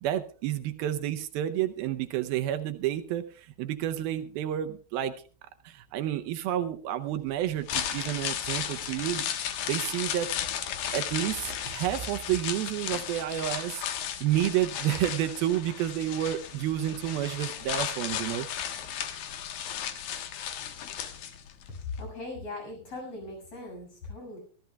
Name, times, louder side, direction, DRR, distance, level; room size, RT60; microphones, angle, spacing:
voice 1, 0.0-5.2 5.6-10.3 10.9-13.8 14.2-18.5, right 12 dB, 80° right, 9 dB, 2.6 m, -30 dB
sound 1, 7.5-21.7 22.0-22.1, left 9 dB, 70° left, 3.0 m, -35 dB
voice 2, 21.8-24.4, left 3 dB, 40° left, 1 dB, 8.0 m, -39 dB
24.5 x 15.0 x 2.3 m, 0.40 s
omnidirectional pair, 4.4 m